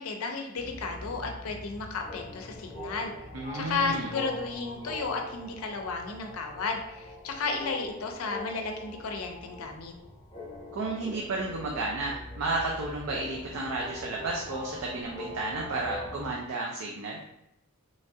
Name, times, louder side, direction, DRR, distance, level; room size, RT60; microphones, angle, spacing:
voice 1, 0.0-3.1 3.5-9.9, left 4 dB, 80° left, 3 dB, 0.5 m, -33 dB
sound 1, 0.6-16.3, left 1 dB, 30° left, 0.8 m, -43 dB
voice 2, 3.3-4.1 10.7-17.2, right 2 dB, 80° right, -1 dB, 0.4 m, -32 dB
3.1 x 2.7 x 2.3 m, 0.80 s
head